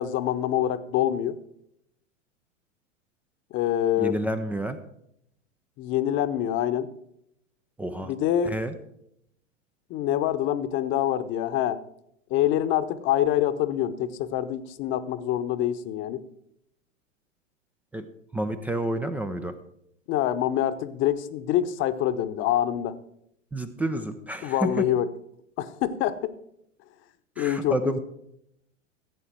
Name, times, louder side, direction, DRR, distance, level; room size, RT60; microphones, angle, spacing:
voice 1, 0.0-1.4 3.5-4.2 5.8-6.9 8.0-8.5 9.9-11.8 12.3-16.2 20.1-23.0 24.4-25.1 25.6-26.4 27.4-28.0, left 11 dB, 30° left, 11 dB, 0.9 m, -25 dB
voice 2, 4.0-4.8 7.8-8.1 8.4-8.7 17.9-18.1 18.3-19.6 23.5-24.9 27.4-28.0, right 1 dB, 5° right, 8 dB, 0.3 m, -29 dB
15.5 x 8.5 x 4.6 m, 0.76 s
figure-of-eight pair, 90°, 38 cm